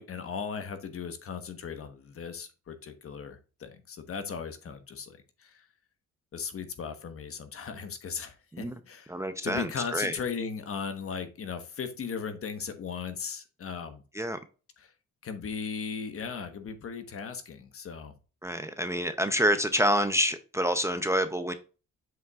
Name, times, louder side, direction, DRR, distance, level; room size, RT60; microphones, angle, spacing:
voice 1, 0.0-5.7 6.3-9.1 9.4-14.0 14.8-14.9 15.2-18.1, left 6 dB, 50° left, 1.2 m, -37 dB
voice 2, 9.1-10.2 14.1-14.4 18.4-21.5, equal, 10° right, 0.6 m, -27 dB
7.4 x 5.9 x 2.4 m
cardioid pair, 90°, 30 cm